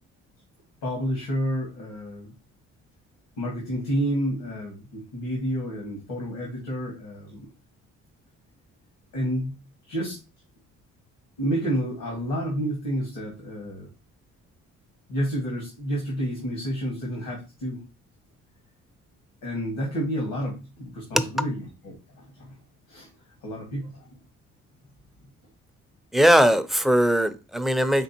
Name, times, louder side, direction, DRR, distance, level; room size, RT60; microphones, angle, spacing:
voice 1, 0.8-2.3 3.4-7.5 9.1-9.6 9.9-10.2 11.4-13.9 15.1-17.9 19.4-22.6 22.9-23.1 23.4-24.2 27.9-28.0, equal, 90° left, 1.9 m, -30 dB
voice 2, 26.1-28.0, equal, ahead, 0.5 m, -19 dB
5.2 x 3.4 x 2.9 m
cardioid pair, 90°, 30 cm